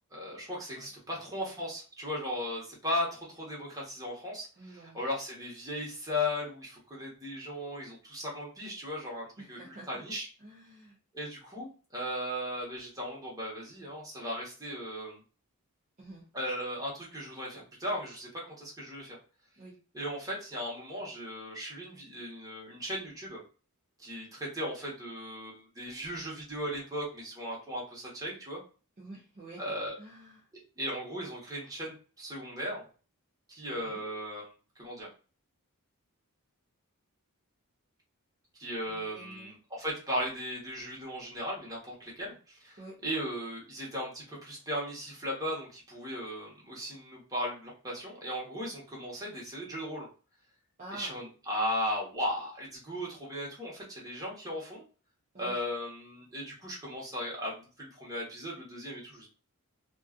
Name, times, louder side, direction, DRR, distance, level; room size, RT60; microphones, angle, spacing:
voice 1, 0.1-10.3 11.1-15.2 16.3-18.3 18.6-19.2 19.9-23.4 24.0-28.6 29.6-29.9 30.5-32.8 33.5-34.5 34.8-35.1 38.6-50.1 50.9-54.8 55.4-59.3, equal, 15° right, -4 dB, 1.1 m, -37 dB
voice 2, 0.7-1.4 4.6-5.0 9.4-10.0 10.4-11.0 16.0-16.3 19.6-19.8 29.0-29.6 30.0-30.5 33.7-34.0 38.8-39.6 42.8-43.0 50.8-51.2 55.3-55.6, right 1 dB, 35° right, -5 dB, 0.6 m, -49 dB
2.6 x 2.3 x 2.4 m, 0.36 s
head